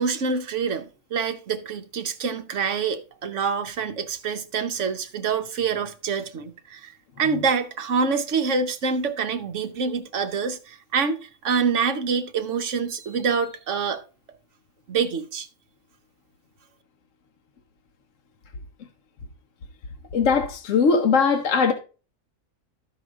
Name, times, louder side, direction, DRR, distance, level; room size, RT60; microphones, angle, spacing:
voice 1, 0.0-6.9 7.2-14.0 14.9-15.5, right 5 dB, 60° right, 1.2 m, -26 dB
voice 2, 20.1-21.7, left 5 dB, 60° left, 1.2 m, -20 dB
13.0 x 4.8 x 3.5 m
omnidirectional pair, 1.5 m